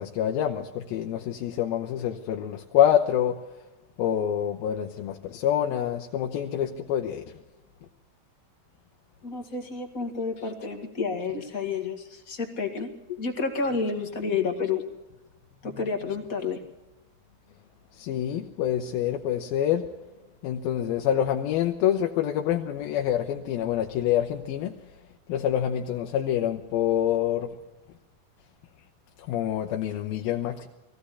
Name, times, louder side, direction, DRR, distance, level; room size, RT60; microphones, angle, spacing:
voice 1, 0.0-3.4 4.0-7.2 18.0-19.8 20.4-24.7 25.3-27.5 29.3-30.7, left 10 dB, 85° left, 2 dB, 2.8 m, -26 dB
voice 2, 9.2-14.8 15.6-16.6, left 5 dB, 35° left, 5 dB, 1.6 m, -30 dB
20.5 x 15.0 x 8.4 m, 1.0 s
omnidirectional pair, 4.2 m